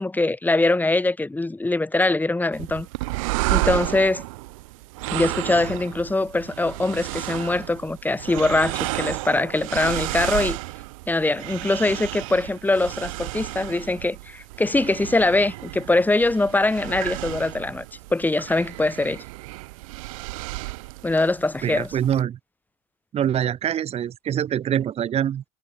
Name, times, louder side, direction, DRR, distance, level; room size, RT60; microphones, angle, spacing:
voice 1, 0.0-2.9 3.5-4.2 5.1-10.6 11.1-17.8 18.1-19.2 21.0-21.9, left 2 dB, 10° left, 1.6 m, -22 dB
sound 1, 2.5-22.2, right 23 dB, 70° right, 5.3 m, -32 dB
voice 2, 21.6-22.4 23.1-25.4, right 10 dB, 35° right, 1.2 m, -24 dB
hypercardioid pair, 80°, 18 cm